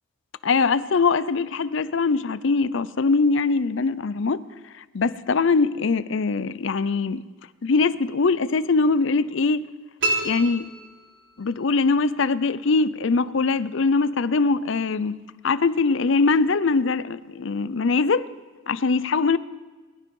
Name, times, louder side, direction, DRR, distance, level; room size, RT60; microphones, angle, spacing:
voice 1, 0.4-4.4 4.9-7.2 7.6-9.7 10.2-10.7 11.4-15.2 15.4-18.3 18.7-19.4, left 4 dB, 65° left, 0.5 m, -22 dB
sound 1, 10.0-11.6, right 2 dB, 65° right, 4.0 m, -28 dB
20.0 x 12.5 x 5.4 m
head